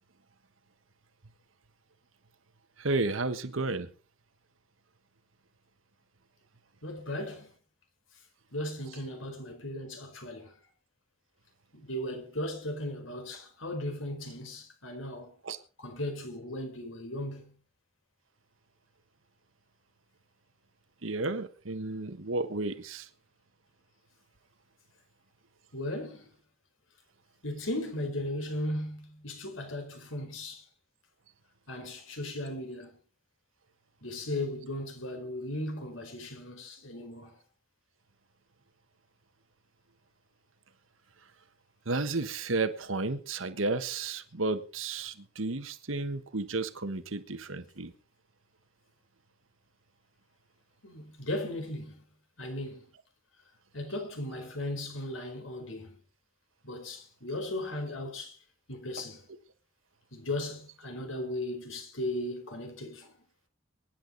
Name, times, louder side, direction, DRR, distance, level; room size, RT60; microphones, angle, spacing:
voice 1, 2.8-3.9 15.4-15.6 21.0-23.1 41.8-47.9, right 3 dB, 90° right, 1.4 m, -32 dB
voice 2, 6.8-7.5 8.5-10.5 11.7-15.3 15.8-17.5 25.7-26.3 27.4-30.6 31.7-32.9 34.0-37.4 50.8-52.0 52.4-52.9 53.7-56.0 56.6-58.4 58.7-59.2 60.1-63.1, left 1 dB, 85° left, 4.9 m, -37 dB
24.0 x 10.5 x 4.1 m
head